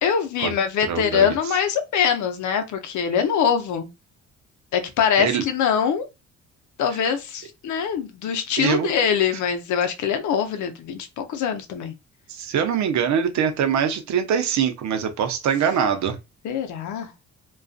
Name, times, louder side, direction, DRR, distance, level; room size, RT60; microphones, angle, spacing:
voice 1, 0.0-3.9 4.7-6.1 6.8-11.9 16.4-17.1, left 7 dB, 75° left, 0.6 m, -23 dB
voice 2, 0.9-1.3 5.2-5.4 8.6-8.9 12.3-16.2, right 7 dB, 70° right, 0.6 m, -23 dB
2.5 x 2.3 x 2.3 m
cardioid pair, 90°, 30 cm